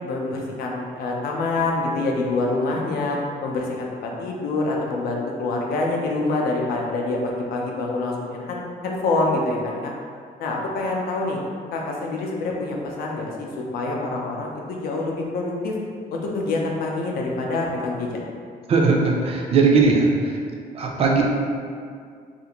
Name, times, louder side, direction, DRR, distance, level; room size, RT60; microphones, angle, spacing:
voice 1, 0.0-9.9 10.4-11.4 11.7-13.5 13.7-15.8 16.1-18.2, left 2 dB, 80° left, -1 dB, 0.5 m, -26 dB
voice 2, 18.7-20.4 20.7-21.2, right 4 dB, 40° right, 0 dB, 0.4 m, -19 dB
2.5 x 2.5 x 2.8 m, 2.2 s
cardioid pair, 150°, 15 cm